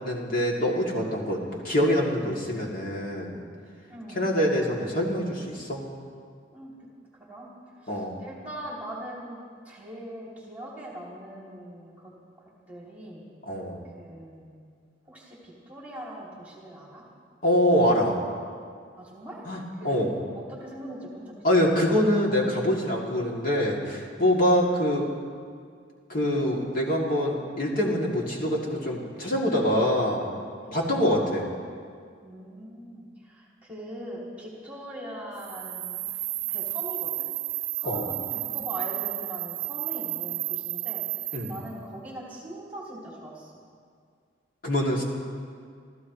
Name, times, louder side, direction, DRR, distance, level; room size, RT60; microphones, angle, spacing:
voice 1, 0.0-3.4 4.1-5.8 7.9-8.1 13.5-13.8 17.4-18.2 19.4-20.2 21.4-25.1 26.1-30.3 30.7-31.5 37.8-38.0 41.3-41.5 44.6-45.0, equal, 50° left, -3 dB, 2.7 m, -25 dB
voice 2, 3.9-4.3 6.5-6.7 7.1-7.5 7.8-12.1 12.7-13.2 14.0-14.5 15.1-17.0 19.0-19.5 19.7-20.0 20.3-21.3 30.6-31.0 32.2-36.0 36.5-37.2 37.7-41.0 41.5-43.5, right 1 dB, 10° right, -5 dB, 2.9 m, -41 dB
sound 1, 35.4-41.7, right 18 dB, 75° right, 0.5 m, -32 dB
29.5 x 14.0 x 3.2 m, 2.1 s
head